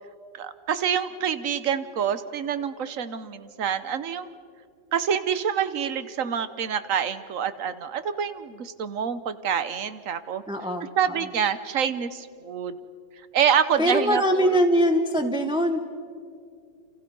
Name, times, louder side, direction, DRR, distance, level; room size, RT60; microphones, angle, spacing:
voice 1, 0.4-4.3 4.9-10.4 11.0-12.7 13.3-14.5, right 8 dB, 55° right, 13 dB, 1.2 m, -26 dB
voice 2, 10.5-10.9 13.8-15.8, equal, 5° right, 4 dB, 0.7 m, -22 dB
29.5 x 28.0 x 5.4 m, 2.3 s
omnidirectional pair, 1.9 m